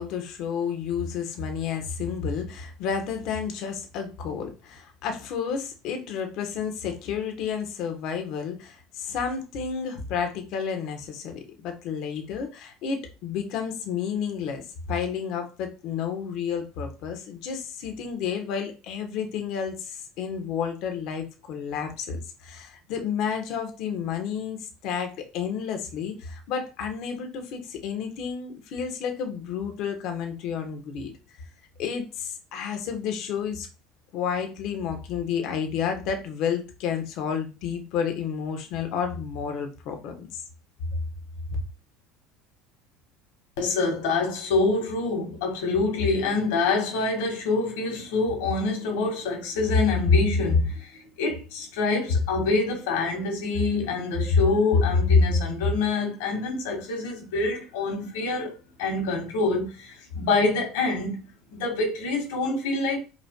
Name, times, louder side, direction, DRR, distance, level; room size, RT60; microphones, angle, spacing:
voice 1, 0.0-31.1 31.8-33.7 34.1-40.4, left 7 dB, 60° left, 1.1 m, -31 dB
voice 2, 43.6-61.2 61.5-63.0, left 3 dB, 85° left, 1.9 m, -25 dB
5.3 x 3.2 x 2.3 m
supercardioid pair, 110°, 0 cm